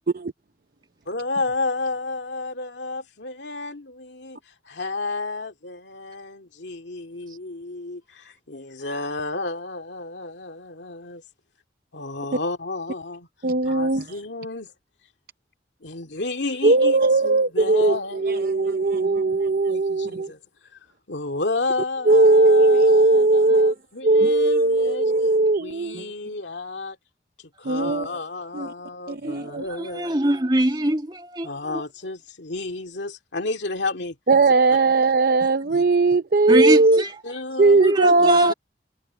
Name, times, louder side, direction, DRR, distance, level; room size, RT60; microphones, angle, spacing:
voice 1, 1.1-4.4 4.6-11.2 11.9-13.3 13.6-14.7 15.8-20.4 21.1-25.1 25.6-27.0 27.6-30.1 31.4-34.2 35.7-35.8 37.2-37.9 38.2-38.5, left 3 dB, 90° left, 2.3 m, -32 dB
voice 2, 13.4-14.1 16.6-20.3 22.1-23.7 24.0-26.1 27.6-28.1 28.5-28.7 29.1-29.6 34.3-37.0 37.6-38.5, right 2 dB, 55° right, 0.6 m, -18 dB
voice 3, 29.2-31.8 36.5-37.2 37.8-38.5, right 1 dB, 25° right, 2.0 m, -24 dB
head